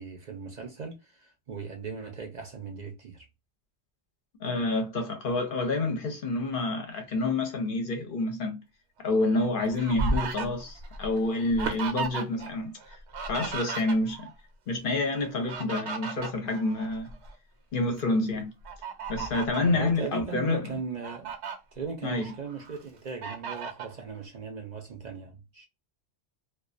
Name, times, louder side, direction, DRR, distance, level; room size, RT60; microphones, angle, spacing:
voice 1, 0.0-3.2 19.7-21.4 21.7-25.6, right 5 dB, 50° right, 0.6 m, -38 dB
voice 2, 4.4-8.6 9.0-12.7 13.3-14.3 14.7-17.1 17.7-18.5 19.1-20.8 22.0-22.3, left 2 dB, 55° left, 0.8 m, -28 dB
Fowl, 9.2-12.5 12.8-14.3 15.2-17.3 17.8-18.0 18.6-19.7 20.3-20.4 20.8-21.6 22.1-22.8 23.2-23.9, right 4 dB, 75° right, 1.0 m, -35 dB
2.4 x 2.3 x 2.4 m
omnidirectional pair, 1.1 m